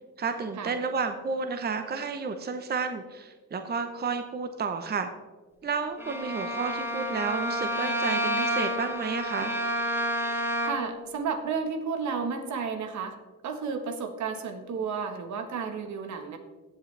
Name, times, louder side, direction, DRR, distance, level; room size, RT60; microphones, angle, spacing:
voice 1, 0.2-5.1 5.6-9.6, right 5 dB, 35° right, 7 dB, 0.9 m, -31 dB
Bowed string instrument, 6.0-11.0, equal, 10° right, 1.4 m, -29 dB
voice 2, 10.6-13.2 13.4-16.4, right 5 dB, 70° right, 6 dB, 1.4 m, -32 dB
16.0 x 7.7 x 3.3 m, 1.3 s
cardioid pair, 90°, 30 cm